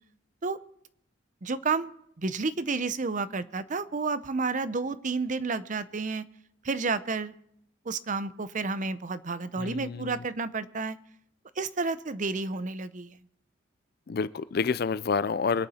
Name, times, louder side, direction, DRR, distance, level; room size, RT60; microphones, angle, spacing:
voice 1, 1.4-1.9 2.2-6.2 6.6-7.3 7.9-11.0 11.6-13.2, right 4 dB, 40° right, 13 dB, 0.6 m, -31 dB
voice 2, 9.6-10.1 14.1-15.7, left 5 dB, 50° left, 16 dB, 0.4 m, -28 dB
24.0 x 8.5 x 4.2 m, 0.72 s
head